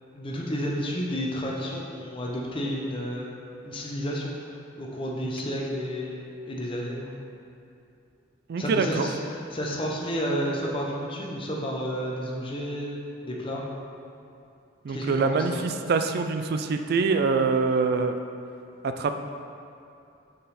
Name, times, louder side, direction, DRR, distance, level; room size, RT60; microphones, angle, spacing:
voice 1, 0.1-3.3 3.6-4.3 4.8-7.1 8.6-9.2 9.5-13.6 14.9-15.6, equal, 25° left, -3 dB, 0.7 m, -31 dB
voice 2, 8.5-9.1 14.8-18.2 18.8-19.1, right 4 dB, 50° right, 7 dB, 0.3 m, -24 dB
6.7 x 3.9 x 4.1 m, 2.6 s
head